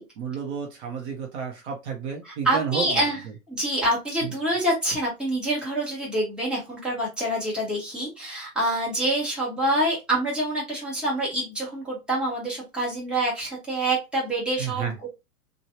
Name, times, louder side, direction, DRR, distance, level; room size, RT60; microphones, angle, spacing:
voice 1, 0.2-3.0 4.2-4.3 14.6-14.9, right 7 dB, 45° right, 0.8 m, -31 dB
voice 2, 2.2-3.2 3.5-15.1, right 1 dB, ahead, 1.0 m, -26 dB
3.1 x 2.3 x 2.7 m
hypercardioid pair, 135°, 47 cm